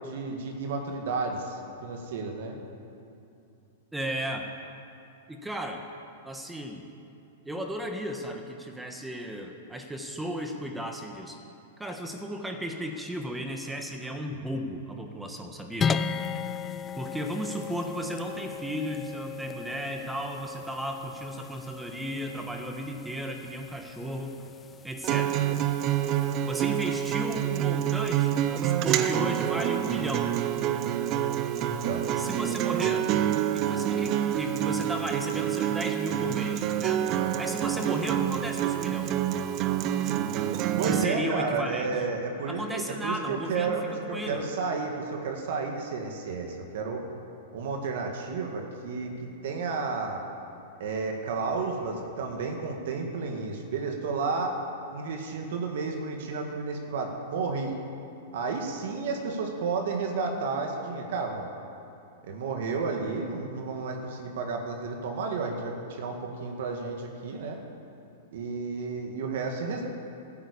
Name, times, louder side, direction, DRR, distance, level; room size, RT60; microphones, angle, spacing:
voice 1, 0.0-2.5 31.6-32.1 40.7-47.0 47.5-49.1 49.4-50.2 50.8-54.6 54.9-57.7 58.3-61.5 62.2-67.6 68.3-69.9, right 4 dB, 65° right, 2 dB, 1.9 m, -32 dB
voice 2, 3.9-4.5 5.3-5.9 6.2-6.8 7.4-11.4 11.8-16.0 17.0-24.3 24.8-25.4 26.5-30.3 32.2-33.1 33.5-37.0 37.4-39.1 40.8-41.9 42.5-44.4, equal, 5° right, 3 dB, 1.3 m, -35 dB
sound 1, 15.8-26.3, left 6 dB, 20° left, 0.4 m, -36 dB
Acoustic guitar, 25.0-41.0, right 11 dB, 40° right, 0.7 m, -27 dB
13.5 x 9.7 x 8.5 m, 2.6 s
hypercardioid pair, 130°, 0 cm